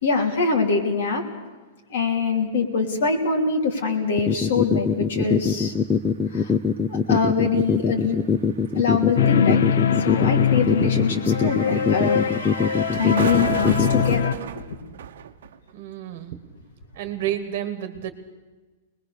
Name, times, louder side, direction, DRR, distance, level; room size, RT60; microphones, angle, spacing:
voice 1, 0.0-1.2 1.9-5.7 6.3-6.5 6.9-8.2 8.7-9.6 10.0-12.2 13.0-14.6, left 4 dB, 60° left, 2 dB, 3.1 m, -24 dB
sound 1, 4.2-14.2, left 6 dB, 10° left, 0.6 m, -22 dB
sound 2, 5.3-5.4 5.5-16.3, right 8 dB, 70° right, 1.0 m, -35 dB
sound 3, 9.2-14.3, left 7 dB, 80° left, 0.8 m, -23 dB
voice 2, 15.7-16.4 16.9-18.1, right 11 dB, 40° right, 10 dB, 1.5 m, -30 dB
24.0 x 20.5 x 6.8 m, 1.2 s
supercardioid pair, 175°, 0 cm